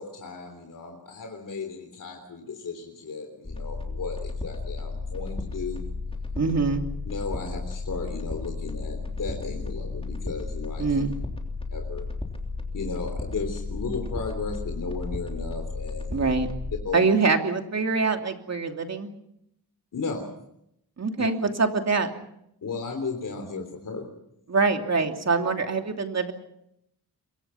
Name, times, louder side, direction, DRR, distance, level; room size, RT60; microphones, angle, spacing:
voice 1, 0.0-5.9 7.1-11.0 11.7-12.1 12.7-16.3 16.8-17.0 19.9-20.2 21.2-21.3 22.6-24.1, left 4 dB, 55° left, 3 dB, 3.6 m, -35 dB
sound 1, 3.4-16.8, left 3 dB, 15° left, 3.3 m, -34 dB
voice 2, 6.3-6.9 10.8-11.1 16.1-16.5 16.9-19.1 21.0-22.1 24.5-26.3, right 4 dB, 45° right, 4 dB, 2.9 m, -24 dB
26.5 x 23.5 x 5.8 m, 0.79 s
wide cardioid pair, 145°, 38 cm